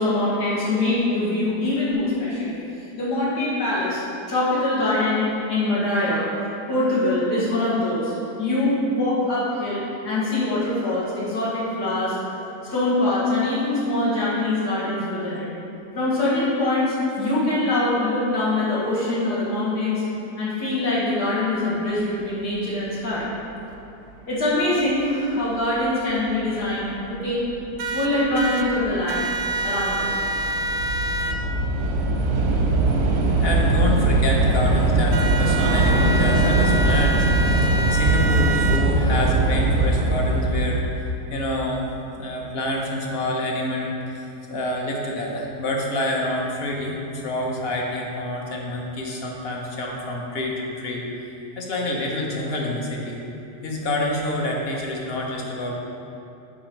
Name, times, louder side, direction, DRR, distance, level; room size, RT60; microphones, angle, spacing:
voice 1, 0.0-4.0 4.3-6.3 6.7-12.2 12.7-15.5 15.9-20.0 20.4-23.3 24.3-27.4 27.8-29.2 29.6-30.2, left 2 dB, 70° left, -10 dB, 2.3 m, -23 dB
Train / Subway metro underground, 26.8-26.9 27.7-28.0 28.3-40.8, right 2 dB, 50° right, 0.8 m, -21 dB
sound 1, 27.8-28.7 29.1-31.4 35.1-38.8, right 2 dB, 85° right, 1.2 m, -27 dB
voice 2, 33.4-41.9 42.2-51.0 51.6-53.2 53.6-55.7, left 1 dB, 40° left, -1 dB, 1.0 m, -27 dB
8.1 x 5.3 x 4.6 m, 2.9 s
omnidirectional pair, 1.8 m